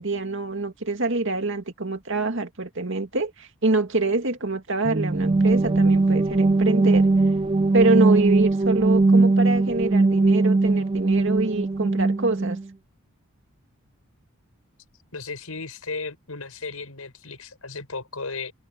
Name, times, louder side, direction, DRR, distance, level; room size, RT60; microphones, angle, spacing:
voice 1, 0.0-7.1 7.7-12.6, right 3 dB, 60° right, 2.2 m, -25 dB
sound 1, 4.8-12.6, right 3 dB, 25° right, 0.4 m, -20 dB
voice 2, 15.1-18.5, left 4 dB, 85° left, 5.7 m, -35 dB
head